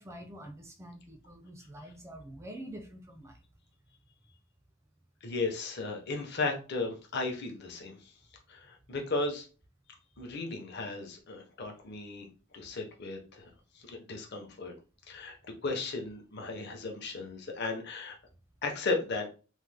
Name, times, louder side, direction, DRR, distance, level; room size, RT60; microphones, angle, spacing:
voice 1, 0.0-3.4, right 1 dB, 15° right, 5 dB, 0.3 m, -46 dB
voice 2, 5.2-8.1 8.5-9.5 10.2-12.3 12.5-13.5 13.8-14.7 15.1-18.1 18.6-19.3, left 3 dB, 55° left, 2 dB, 0.7 m, -35 dB
3.1 x 2.1 x 3.3 m, 0.34 s
head